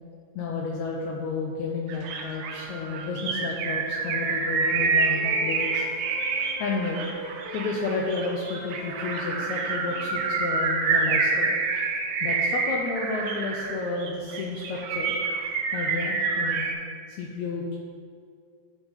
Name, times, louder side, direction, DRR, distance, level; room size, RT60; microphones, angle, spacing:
voice 1, 0.3-5.8 6.6-7.1 7.5-11.5 12.2-15.1 15.7-16.7 17.1-17.8, left 3 dB, 80° left, -1 dB, 1.7 m, -31 dB
sound 1, 1.9-16.7, right 4 dB, 85° right, 1.4 m, -27 dB
Wind instrument woodwind instrument, 3.1-3.5 3.8-10.3, left 1 dB, 60° left, 2.3 m, -42 dB
10.5 x 3.8 x 4.0 m, 2.2 s
omnidirectional pair, 3.7 m